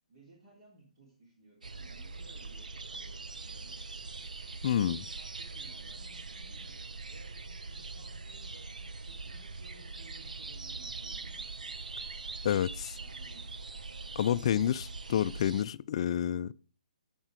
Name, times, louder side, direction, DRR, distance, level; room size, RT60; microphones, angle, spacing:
voice 1, 0.1-3.8 4.6-11.5 13.0-13.5 14.1-14.6, right 2 dB, 45° right, 3.8 m, -59 dB
sound 1, 1.6-15.6, right 3 dB, 80° right, 0.7 m, -42 dB
voice 2, 4.6-5.0 12.4-13.0 14.2-16.5, left 10 dB, 45° left, 0.4 m, -29 dB
12.5 x 4.6 x 4.9 m
figure-of-eight pair, 140°, 4 cm